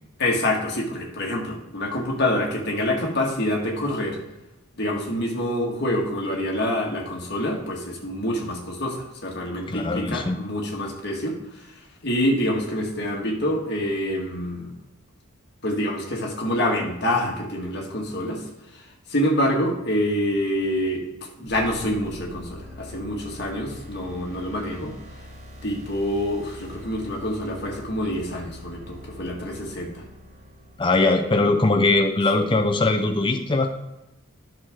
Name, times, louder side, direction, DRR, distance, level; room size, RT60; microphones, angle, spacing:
voice 1, 0.2-4.2 4.8-11.3 12.0-14.7 15.6-18.4 19.1-21.1 21.4-24.9 25.6-30.0, left 1 dB, 50° left, -1 dB, 1.7 m, -26 dB
voice 2, 9.7-10.4 30.8-33.7, left 2 dB, 25° left, 4 dB, 0.6 m, -21 dB
sound 1, 21.5-31.3, left 1 dB, 35° right, 1.8 m, -43 dB
10.5 x 6.5 x 3.6 m, 0.93 s
head